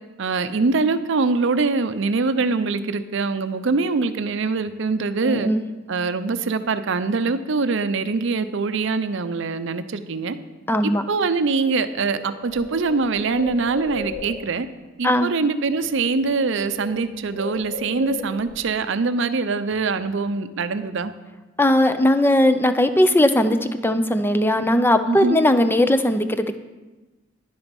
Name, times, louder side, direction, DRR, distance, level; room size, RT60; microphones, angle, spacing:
voice 1, 0.2-5.5 5.9-10.4 10.8-14.7 15.0-21.1 25.1-25.4, right 4 dB, 65° right, 11 dB, 0.6 m, -23 dB
voice 2, 5.2-5.6 10.7-11.0 15.0-15.3 21.6-26.6, left 1 dB, 10° left, 10 dB, 0.5 m, -18 dB
Bird, 11.7-11.8 12.1-14.6 15.6-15.9 16.1-18.6, left 1 dB, 90° left, 3.8 m, -35 dB
10.5 x 7.1 x 5.3 m, 1.2 s
head